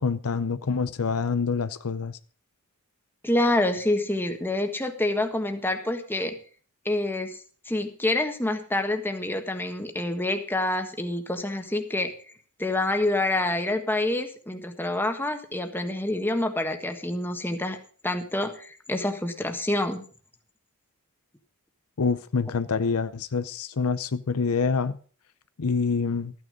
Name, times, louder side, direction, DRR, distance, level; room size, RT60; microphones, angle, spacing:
voice 1, 0.0-2.2 22.0-25.0 25.6-26.3, left 5 dB, 75° left, 0.6 m, -26 dB
voice 2, 3.2-6.4 6.8-7.4 7.6-12.1 12.6-17.8 18.0-20.0, left 1 dB, 10° left, 1.4 m, -27 dB
13.5 x 9.5 x 5.2 m
head